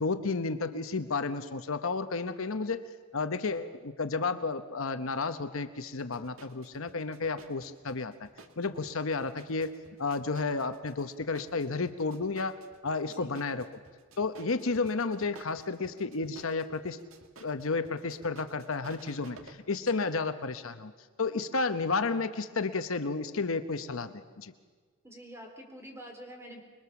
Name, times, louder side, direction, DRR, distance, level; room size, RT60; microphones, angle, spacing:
voice 1, 0.0-2.8 3.1-8.3 8.6-9.7 10.0-13.7 14.2-17.0 17.4-20.9 21.2-24.5, left 4 dB, 65° left, 10 dB, 0.9 m, -32 dB
sound 1, 5.9-19.8, right 3 dB, 70° right, 1.9 m, -55 dB
voice 2, 25.0-26.6, equal, 15° right, 2 dB, 4.1 m, -47 dB
26.0 x 22.0 x 7.1 m, 1.5 s
head